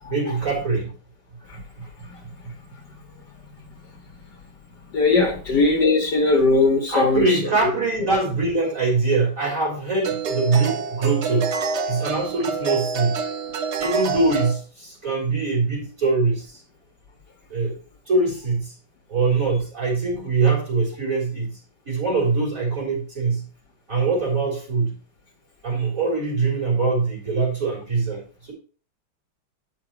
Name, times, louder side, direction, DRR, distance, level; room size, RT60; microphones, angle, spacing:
voice 1, 0.1-0.9 6.9-11.5 11.8-13.2 13.8-16.6 17.5-17.8 18.1-18.7 19.1-21.6 21.9-23.4 23.9-24.9 25.6-28.5, right 3 dB, 35° right, -3 dB, 4.1 m, -23 dB
voice 2, 4.9-7.4, left 3 dB, 55° left, 3 dB, 1.9 m, -19 dB
sound 1, 8.6-8.8 10.0-14.5, right 5 dB, 85° right, 0.6 m, -27 dB
9.2 x 6.1 x 4.5 m, 0.38 s
omnidirectional pair, 2.4 m